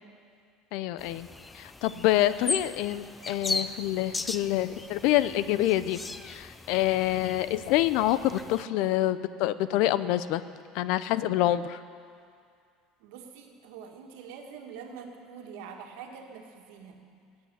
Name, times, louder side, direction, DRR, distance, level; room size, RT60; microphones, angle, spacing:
voice 1, 0.7-1.3 1.5-6.0 6.2-10.4 10.7-11.8, left 14 dB, 65° left, 14 dB, 0.6 m, -26 dB
sound 1, 1.0-8.6, left 3 dB, 10° left, 0.4 m, -38 dB
voice 2, 13.0-16.9, right 6 dB, 75° right, 3 dB, 1.9 m, -45 dB
17.5 x 8.9 x 8.5 m, 2.3 s
cardioid pair, 150°, 0 cm